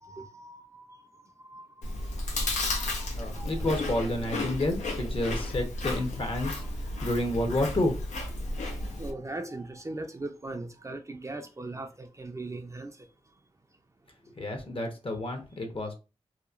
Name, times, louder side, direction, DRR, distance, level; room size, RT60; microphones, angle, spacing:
voice 1, 0.0-3.6 6.3-6.5 8.5-13.1, right 2 dB, 25° right, 0.4 m, -41 dB
Chewing mastication, 1.8-9.1, left 2 dB, 85° left, 0.6 m, -33 dB
voice 2, 3.2-8.0 14.3-15.9, left 1 dB, 50° left, 0.9 m, -30 dB
2.9 x 2.1 x 2.4 m
cardioid pair, 45°, 12 cm